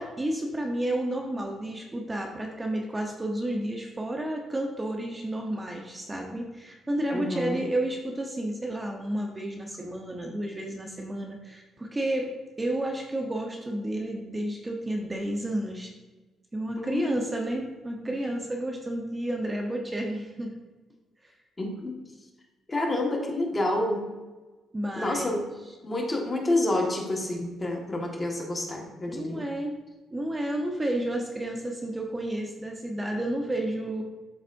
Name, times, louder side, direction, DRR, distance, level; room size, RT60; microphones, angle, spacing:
voice 1, 0.0-12.3 12.6-15.9 16.5-20.5 21.2-21.3 24.7-25.3 29.1-29.8 30.1-34.0, right 1 dB, 20° right, 1 dB, 0.9 m, -31 dB
voice 2, 7.1-7.6 16.8-17.3 18.0-18.1 21.6-22.0 22.7-24.1 25.0-25.4 25.8-29.4, left 1 dB, 25° left, 0 dB, 1.5 m, -28 dB
12.0 x 4.0 x 2.6 m, 1.2 s
cardioid pair, 90°, 0 cm